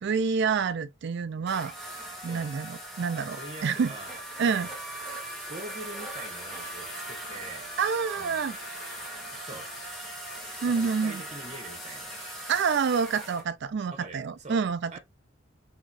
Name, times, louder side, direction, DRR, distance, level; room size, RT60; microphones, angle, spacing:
voice 1, 0.0-1.7 2.2-3.9 4.4-4.7 7.8-8.6 10.6-11.2 12.5-15.0, right 5 dB, 60° right, 0.4 m, -28 dB
sound 1, 1.5-13.4, right 1 dB, ahead, 1.4 m, -40 dB
voice 2, 3.1-4.1 4.4-4.7 5.5-7.7 8.2-8.4 9.3-9.7 10.6-12.1 13.9-14.6 14.9-15.0, right 2 dB, 35° right, 1.3 m, -44 dB
3.8 x 3.0 x 2.5 m
head